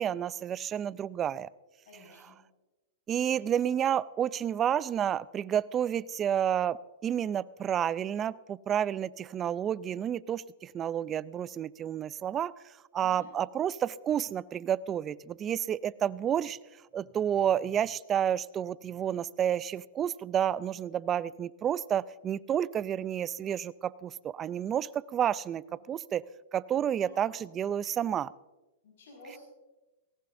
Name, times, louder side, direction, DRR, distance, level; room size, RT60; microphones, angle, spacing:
voice 1, 0.0-1.5 2.2-2.3 3.1-16.6 16.9-26.2 26.5-28.3, right 9 dB, 20° right, 19 dB, 0.3 m, -30 dB
voice 2, 1.9-2.4 3.2-3.4 13.0-13.2 26.9-27.3 28.8-29.4, left 1 dB, 75° left, -2 dB, 5.5 m, -52 dB
19.0 x 18.0 x 2.6 m, 1.1 s
hypercardioid pair, 150°, 0 cm